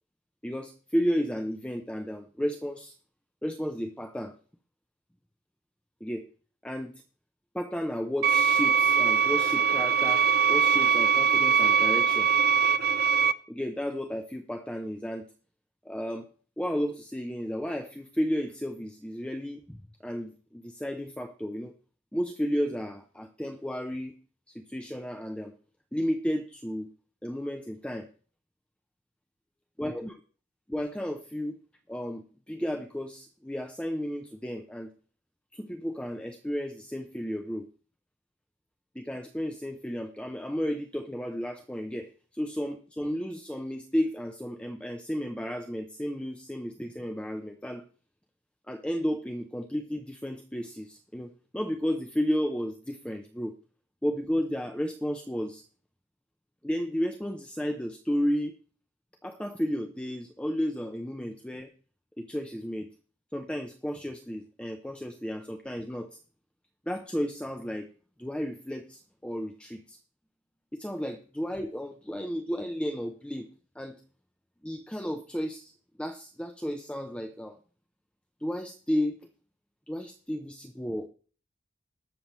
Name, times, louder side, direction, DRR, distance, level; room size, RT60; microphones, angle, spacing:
voice 1, 0.4-2.9 3.4-4.4 6.0-6.3 6.6-6.9 7.5-12.3 13.5-15.3 15.8-16.3 16.6-21.7 22.1-24.1 24.5-25.5 25.9-26.9 27.2-28.1 29.8-30.2 30.7-31.6 31.9-34.9 35.5-37.7 38.9-47.8 48.7-53.6 54.0-55.6 56.6-58.6 59.2-61.7 62.2-62.9 63.3-66.1 66.9-67.9 68.2-70.0 70.7-73.5 73.8-74.0 74.6-75.7 76.0-77.6 78.4-79.2 79.9-81.1, equal, 5° left, 5 dB, 0.6 m, -33 dB
sound 1, 8.2-13.3, right 7 dB, 55° right, 0.5 m, -22 dB
20.0 x 6.8 x 3.1 m, 0.40 s
head